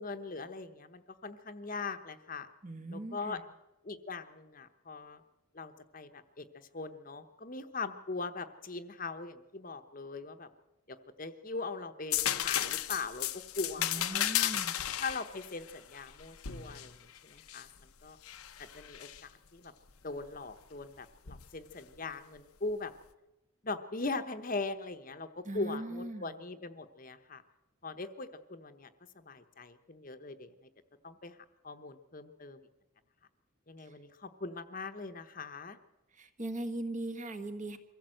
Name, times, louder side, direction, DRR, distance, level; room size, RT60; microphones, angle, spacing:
voice 1, 0.0-2.5 2.9-3.4 3.8-5.2 5.5-10.5 10.9-14.5 15.0-18.2 18.6-19.7 20.0-22.9 23.6-27.4 27.8-28.9 29.1-30.7 31.0-31.4 31.6-32.7 33.7-35.8, left 3 dB, 40° left, 9 dB, 1.0 m, -41 dB
voice 2, 2.6-3.4 13.8-14.7 25.4-26.4 33.8-33.9 36.1-37.8, right 1 dB, 35° right, 8 dB, 1.4 m, -39 dB
sound 1, 12.1-17.7 18.2-19.2 21.3-21.4, left 12 dB, 90° left, 0.9 m, -34 dB
23.5 x 15.5 x 7.8 m, 1.0 s
head